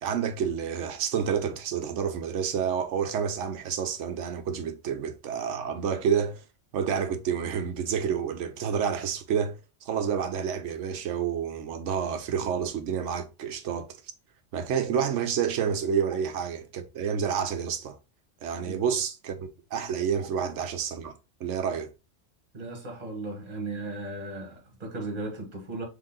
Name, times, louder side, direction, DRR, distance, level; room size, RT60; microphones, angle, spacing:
voice 1, 0.0-6.4 6.7-13.9 14.5-18.0 18.4-21.1 21.4-21.9, right 7 dB, 85° right, 1.0 m, -29 dB
voice 2, 18.5-18.8 22.5-25.9, right 2 dB, 35° right, 1.3 m, -36 dB
3.8 x 3.4 x 3.7 m
omnidirectional pair, 1.2 m